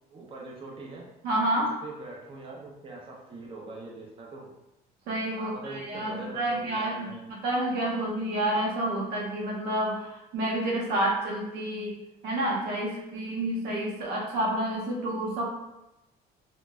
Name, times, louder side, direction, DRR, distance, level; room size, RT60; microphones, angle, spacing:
voice 1, 0.1-1.1 1.8-4.5 5.4-7.2, right 2 dB, 30° right, -2 dB, 0.6 m, -42 dB
voice 2, 1.2-1.7 5.1-11.9 12.2-15.5, right 1 dB, 80° right, -3 dB, 0.9 m, -29 dB
3.7 x 2.5 x 2.2 m, 0.93 s
cardioid pair, 110°, 17 cm